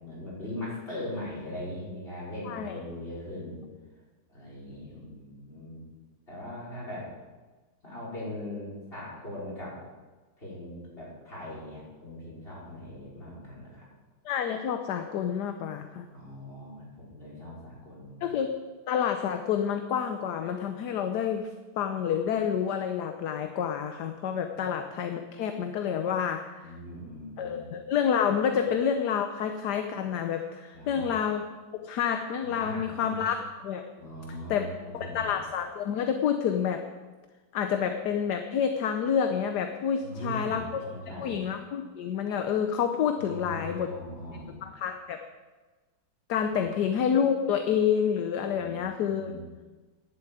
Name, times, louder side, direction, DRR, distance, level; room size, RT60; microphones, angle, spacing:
voice 1, 0.0-3.6 4.3-5.9 6.3-7.1 7.8-9.8 10.4-13.9 16.1-18.4 24.5-24.7 26.6-27.7 30.7-31.1 32.4-33.2 34.0-35.3 40.0-41.3 43.2-44.6 46.5-46.7 48.5-49.4, left 1 dB, 30° left, -7 dB, 5.4 m, -40 dB
voice 2, 2.5-2.8 14.2-16.1 18.2-18.5 18.9-21.5 21.8-26.7 27.4-31.4 31.7-33.8 34.5-34.7 34.9-36.8 37.5-40.8 41.2-43.9 44.6-45.2 46.3-49.4, left 8 dB, 65° left, 7 dB, 1.3 m, -28 dB
11.0 x 7.8 x 9.1 m, 1.3 s
omnidirectional pair, 2.1 m